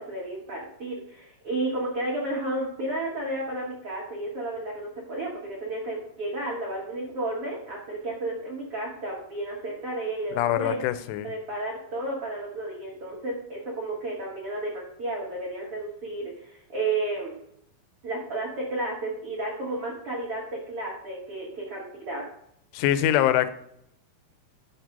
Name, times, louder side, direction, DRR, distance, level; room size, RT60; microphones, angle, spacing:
voice 1, 0.0-10.8 11.2-17.3 18.0-22.2, right 2 dB, 85° right, -4 dB, 1.2 m, -32 dB
voice 2, 10.3-11.3 22.7-23.5, left 12 dB, 85° left, 12 dB, 3.1 m, -23 dB
6.5 x 6.0 x 5.3 m, 0.72 s
omnidirectional pair, 5.4 m